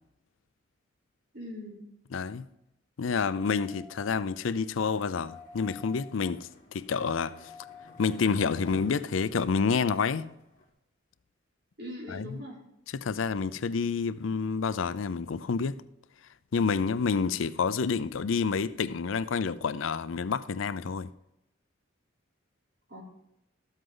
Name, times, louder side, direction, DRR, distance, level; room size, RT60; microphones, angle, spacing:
voice 1, 1.3-1.8 11.8-12.6 22.9-23.0, equal, 55° right, 3.6 m, -41 dB
voice 2, 2.1-2.5 3.0-7.5 8.0-10.3 12.1-12.4 12.9-15.8 16.5-21.1, left 5 dB, 80° left, 0.5 m, -29 dB
sound 1, 3.2-4.3 5.2-6.3 7.0-8.2 8.8-8.9, left 4 dB, ahead, 1.4 m, -50 dB
Skateboard, 5.2-10.7, left 1 dB, 40° left, 2.4 m, -50 dB
13.0 x 8.1 x 3.9 m
head